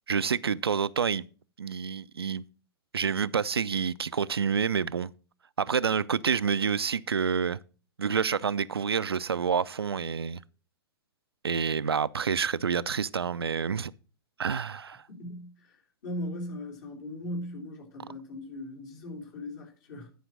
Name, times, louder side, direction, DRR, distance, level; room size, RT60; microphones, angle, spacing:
voice 1, 0.1-1.2 1.6-2.4 2.9-5.1 5.6-7.6 8.0-10.4 11.4-13.9 14.4-15.0, right 6 dB, 75° right, 0.4 m, -28 dB
voice 2, 15.1-15.8 16.0-20.1, left 1 dB, 45° left, 3.2 m, -38 dB
10.5 x 5.0 x 6.1 m
figure-of-eight pair, 105°, 13 cm